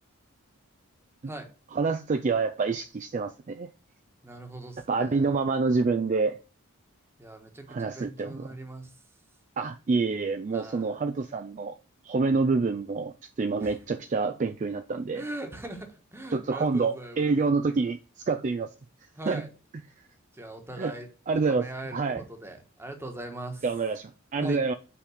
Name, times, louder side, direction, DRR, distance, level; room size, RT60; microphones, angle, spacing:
voice 1, 1.7-3.7 4.9-6.4 7.7-8.5 9.6-11.8 12.0-15.2 16.3-18.7 19.3-19.4 20.8-20.9 21.3-21.7 21.9-22.2 23.6-24.7, right 4 dB, 35° right, 0.3 m, -27 dB
voice 2, 4.2-5.4 7.2-9.0 10.5-10.9 13.6-13.7 15.1-17.3 19.1-19.5 20.3-21.1 21.5-23.6 24.4-24.6, right 1 dB, 10° right, 1.2 m, -40 dB
5.7 x 5.1 x 6.3 m
head